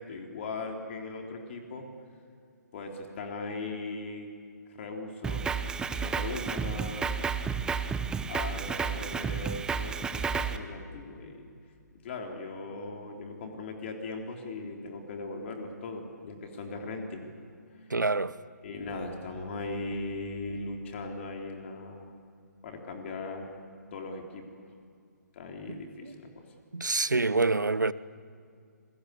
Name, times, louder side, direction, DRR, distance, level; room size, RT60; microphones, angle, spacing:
voice 1, 0.0-1.9 2.7-4.3 4.7-5.5 6.0-7.1 8.3-11.5 12.0-17.3 17.7-17.9 18.6-22.1 22.6-23.5 23.9-24.6 25.3-26.5, left 3 dB, 40° left, 3.7 m, -39 dB
Drum kit, 5.2-10.6, right 6 dB, 10° right, 0.8 m, -31 dB
voice 2, 17.9-18.4 25.7-26.1 26.7-27.9, right 3 dB, 85° right, 1.0 m, -27 dB
28.5 x 22.5 x 8.4 m
figure-of-eight pair, 140°, 10 cm